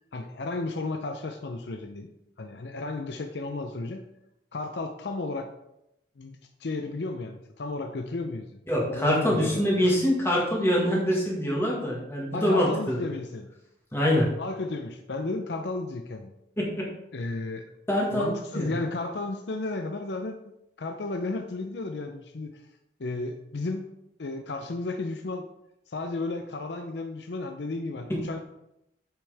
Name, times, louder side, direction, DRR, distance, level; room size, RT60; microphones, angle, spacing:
voice 1, 0.1-2.1 2.4-4.0 4.5-5.5 6.2-8.6 8.9-10.0 12.3-13.5 14.4-16.3 17.1-17.7 18.1-20.4 20.8-22.6 23.0-23.9 24.2-25.5 25.9-28.4, left 3 dB, 75° left, 5 dB, 0.6 m, -33 dB
voice 2, 8.7-13.0 13.9-14.3 16.6-16.8 17.9-18.8, equal, 15° left, -4 dB, 1.6 m, -25 dB
8.3 x 6.2 x 3.4 m, 0.84 s
head